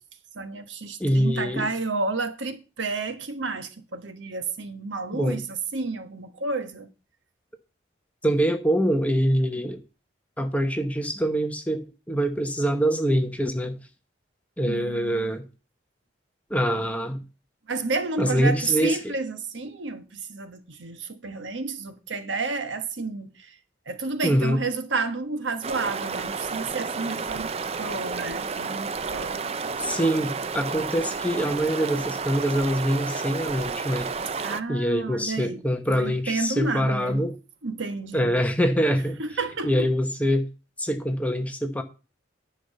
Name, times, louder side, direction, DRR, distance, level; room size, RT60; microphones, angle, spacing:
voice 1, 0.3-6.9 14.6-15.3 17.7-23.6 23.9-30.0 34.4-35.6 35.9-37.2 37.6-38.4 39.2-39.9, right 3 dB, 80° right, 1.2 m, -31 dB
voice 2, 1.0-1.7 5.1-5.4 8.2-9.8 10.4-13.7 14.6-15.4 16.5-17.2 18.2-19.0 24.2-24.6 29.8-34.1 34.7-37.3 38.1-39.2 39.6-40.5 40.8-41.8, equal, 10° left, 0.9 m, -24 dB
sound 1, 25.6-34.6, right 5 dB, 30° right, 0.4 m, -31 dB
10.0 x 5.6 x 6.5 m
head